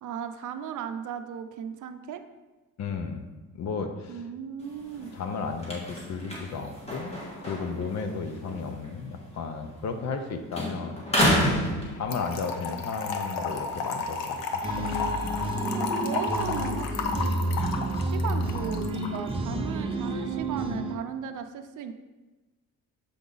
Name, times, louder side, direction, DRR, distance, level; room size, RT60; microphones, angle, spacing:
voice 1, 0.0-2.2 4.1-5.1 15.7-17.4 18.0-21.9, right 8 dB, 60° right, 8 dB, 0.6 m, -36 dB
voice 2, 2.8-3.3 3.5-4.2 5.1-11.1 11.9-14.4 14.8-14.9, left 5 dB, 50° left, 7 dB, 0.7 m, -34 dB
sound 1, 4.6-10.2 10.5-12.5 13.0-16.1, equal, 20° left, 1.6 m, -32 dB
Trickle dribble / Fill (with liquid), 12.1-19.2, left 4 dB, 80° left, 0.8 m, -32 dB
sound 2, 14.6-21.0, right 1 dB, 15° right, 0.6 m, -30 dB
7.0 x 4.7 x 3.9 m, 1.2 s
cardioid pair, 135°, 34 cm